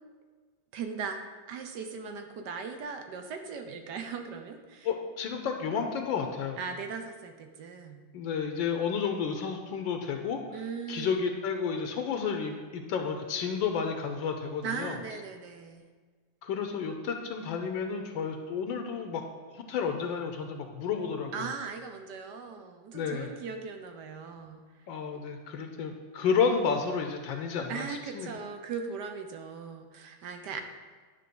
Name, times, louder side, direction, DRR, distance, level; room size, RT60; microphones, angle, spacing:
voice 1, 0.7-4.9 6.6-8.0 10.5-11.1 14.6-15.8 21.3-24.6 27.7-30.6, right 5 dB, 70° right, 6 dB, 1.1 m, -38 dB
voice 2, 4.8-6.6 8.1-15.0 16.4-19.2 19.5-21.5 22.9-23.3 24.9-28.3, left 6 dB, 75° left, 5 dB, 1.4 m, -31 dB
10.5 x 3.5 x 6.7 m, 1.4 s
omnidirectional pair, 2.2 m